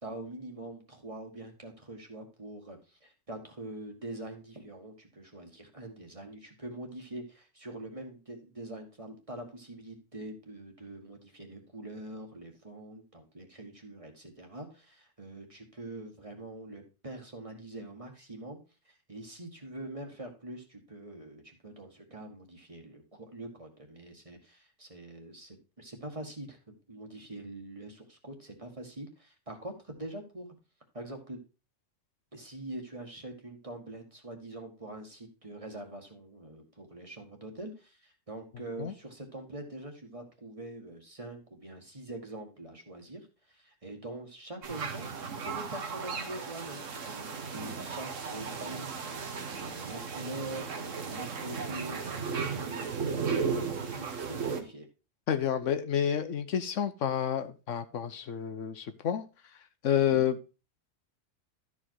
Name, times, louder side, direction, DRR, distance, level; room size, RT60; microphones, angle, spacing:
voice 1, 0.0-18.6 18.8-30.5 30.9-31.4 32.3-54.9 60.1-60.2, right 1 dB, 25° right, 3 dB, 1.7 m, -44 dB
sound 1, 44.6-54.6, right 5 dB, 75° right, 1.6 m, -35 dB
voice 2, 55.3-59.2 59.8-60.4, left 9 dB, 75° left, 10 dB, 1.1 m, -29 dB
12.5 x 4.9 x 4.6 m, 0.31 s
omnidirectional pair, 1.3 m